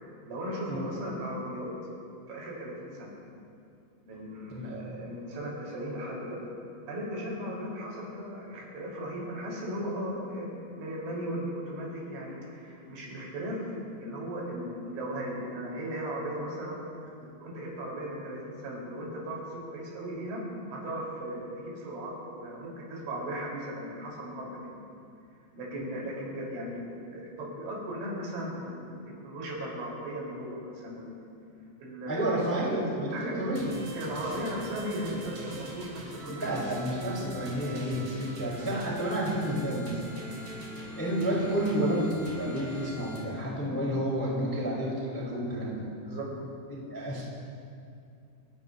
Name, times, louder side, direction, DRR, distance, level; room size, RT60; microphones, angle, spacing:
voice 1, 0.2-1.7 2.3-3.1 4.0-6.4 6.9-10.5 10.8-16.8 17.4-20.4 20.7-21.4 21.7-24.7 25.5-29.0 29.2-31.2 31.8-32.3 32.7-33.3 33.9-36.6 37.0-37.3 43.6-43.7 46.1-46.3, equal, 65° right, -4 dB, 6.5 m, -37 dB
voice 2, 32.1-33.7 36.2-40.0 40.9-45.9 46.9-47.2, right 1 dB, 5° left, -6 dB, 3.0 m, -30 dB
sound 1, 33.6-43.2, right 1 dB, 45° right, 5.6 m, -43 dB
29.0 x 17.0 x 2.7 m, 2.5 s
omnidirectional pair, 5.8 m